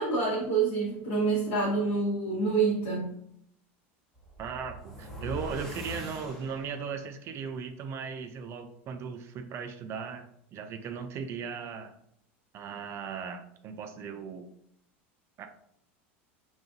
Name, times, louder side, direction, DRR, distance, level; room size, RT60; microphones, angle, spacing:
voice 1, 0.0-3.1, right 4 dB, 75° left, -8 dB, 1.1 m, -27 dB
sound 1, 4.1-7.0, left 1 dB, ahead, 1.0 m, -42 dB
voice 2, 4.4-11.9 12.5-14.5 15.4-15.5, right 6 dB, 40° right, 7 dB, 0.4 m, -37 dB
2.9 x 2.4 x 2.7 m, 0.70 s
supercardioid pair, 105°, 7 cm